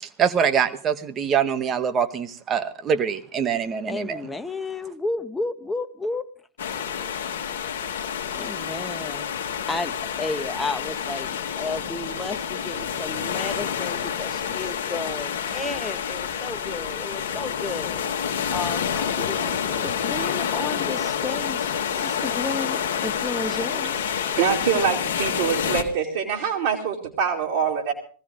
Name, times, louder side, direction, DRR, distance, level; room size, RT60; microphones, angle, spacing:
voice 1, 0.0-4.2, right 7 dB, 30° right, 10 dB, 1.1 m, -24 dB
voice 2, 3.9-6.3 8.3-9.9 10.2-18.0 18.5-24.0, left 3 dB, 10° left, 9 dB, 1.0 m, -33 dB
sound 1, 6.6-25.8, left 8 dB, 65° left, 1.4 m, -28 dB
voice 3, 24.0-27.9, right 7 dB, 55° right, -2 dB, 2.5 m, -25 dB
19.5 x 15.5 x 3.7 m, 0.41 s
figure-of-eight pair, 90°, 0 cm